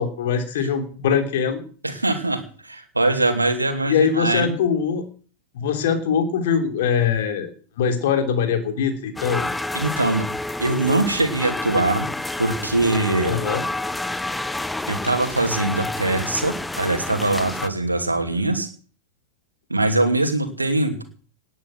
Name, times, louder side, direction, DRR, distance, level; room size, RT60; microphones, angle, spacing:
voice 1, 0.0-1.6 3.9-5.1 5.5-7.5 7.8-9.5 13.3-13.6, left 7 dB, 55° left, 7 dB, 2.9 m, -22 dB
voice 2, 1.8-4.6 9.7-10.2 10.6-12.1 12.4-13.4 14.9-18.7 19.7-21.0, right 2 dB, 80° right, 6 dB, 2.6 m, -22 dB
sound 1, 9.2-17.7, left 2 dB, 5° left, 0.7 m, -29 dB
19.0 x 9.4 x 6.1 m, 0.42 s
figure-of-eight pair, 90°, 0 cm